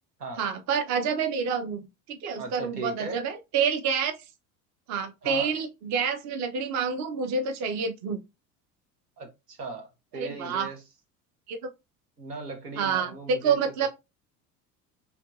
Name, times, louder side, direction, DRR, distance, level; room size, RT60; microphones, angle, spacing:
voice 1, 0.4-1.8 2.1-4.1 4.9-8.2 10.1-10.7 11.5-11.6 12.8-13.9, right 6 dB, 40° right, 0.7 m, -28 dB
voice 2, 2.4-3.2 5.2-5.5 9.2-10.8 12.2-13.9, right 3 dB, 85° right, 0.9 m, -38 dB
3.5 x 2.9 x 2.4 m
figure-of-eight pair, 70°, 45 cm